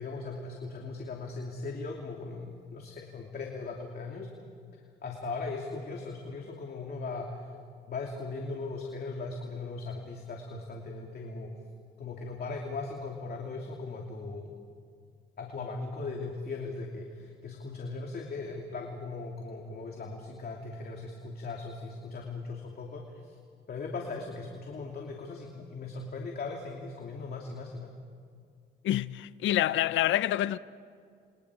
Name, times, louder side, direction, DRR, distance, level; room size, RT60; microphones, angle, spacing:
voice 1, 0.0-4.3 5.0-7.5 7.9-11.5 12.0-14.5 15.4-23.3 23.7-27.9, left 3 dB, 50° left, 2.8 m, -38 dB
voice 2, 28.8-30.6, left 13 dB, 75° left, 0.6 m, -27 dB
29.0 x 26.5 x 5.0 m
cardioid pair, 90°, 20 cm